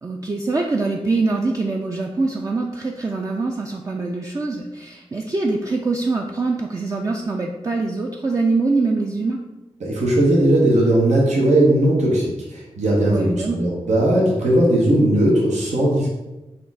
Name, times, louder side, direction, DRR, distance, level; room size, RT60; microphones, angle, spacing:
voice 1, 0.0-9.4 13.1-13.6, right 3 dB, 30° right, 1 dB, 0.4 m, -24 dB
voice 2, 9.8-16.1, right 1 dB, 85° right, -3 dB, 1.0 m, -18 dB
4.2 x 2.5 x 4.0 m, 1.0 s
cardioid pair, 45°, 12 cm